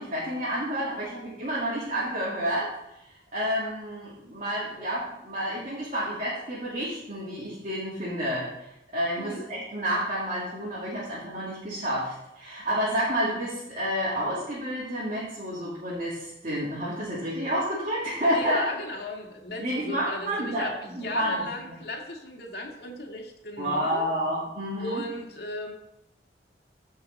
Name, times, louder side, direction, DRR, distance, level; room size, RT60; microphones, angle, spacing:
voice 1, 0.0-2.7 3.3-8.5 8.9-18.6 19.6-20.7 21.0-21.4 23.6-25.0, equal, 40° right, -8 dB, 2.6 m, -29 dB
voice 2, 18.3-24.1 24.8-25.7, left 1 dB, 65° left, 0 dB, 1.9 m, -36 dB
15.0 x 5.7 x 4.0 m, 0.85 s
head